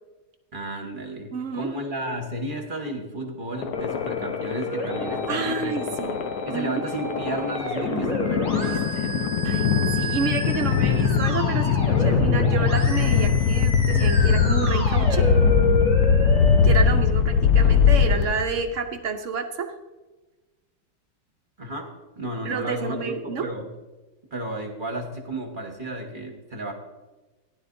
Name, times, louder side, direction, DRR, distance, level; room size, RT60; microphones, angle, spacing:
voice 1, 0.5-5.8 6.5-9.4 21.6-23.7 24.3-26.7, right 1 dB, 35° right, 2 dB, 1.1 m, -33 dB
voice 2, 1.3-1.7 5.3-6.2 6.5-6.8 9.4-9.6 9.9-15.3 16.6-19.7 22.4-23.4, right 5 dB, 60° right, 6 dB, 0.8 m, -29 dB
sound 1, 3.6-18.7, left 6 dB, 65° left, 1.0 m, -21 dB
Musical instrument, 3.7-16.7, equal, 20° left, 2.5 m, -31 dB
15.5 x 11.0 x 2.6 m, 1.2 s
omnidirectional pair, 2.0 m